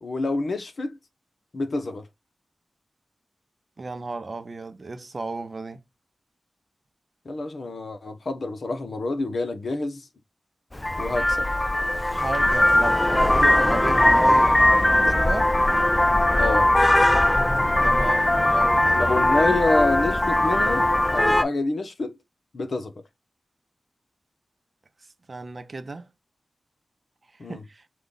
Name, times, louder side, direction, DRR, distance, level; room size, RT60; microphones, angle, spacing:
voice 1, 0.0-1.0 1.5-2.1 7.2-10.1 11.0-11.5 16.4-16.7 18.9-22.2 22.5-23.0 27.4-27.6, left 2 dB, 65° left, 0.8 m, -27 dB
voice 2, 3.8-5.8 12.1-14.6 14.9-15.5 17.8-19.5 25.3-26.1 27.5-27.8, right 3 dB, 45° right, 0.7 m, -34 dB
Vehicle horn car horn honking, 10.8-21.4, left 1 dB, 15° left, 0.3 m, -20 dB
5.0 x 2.3 x 3.8 m
wide cardioid pair, 75°, 0 cm